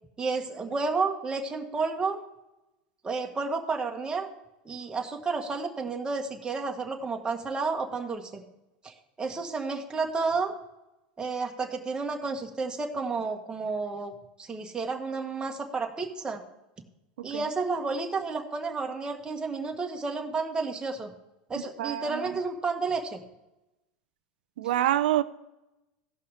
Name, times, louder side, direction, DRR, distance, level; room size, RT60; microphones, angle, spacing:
voice 1, 0.2-2.2 3.0-4.3 4.6-8.4 8.8-10.5 11.2-14.1 14.4-16.4 17.2-21.1 21.5-23.2, right 4 dB, 15° right, 1.6 m, -31 dB
voice 2, 21.5-22.4 24.6-25.2, right 13 dB, 80° right, 0.6 m, -27 dB
15.5 x 5.7 x 5.0 m
hypercardioid pair, 105°, 5 cm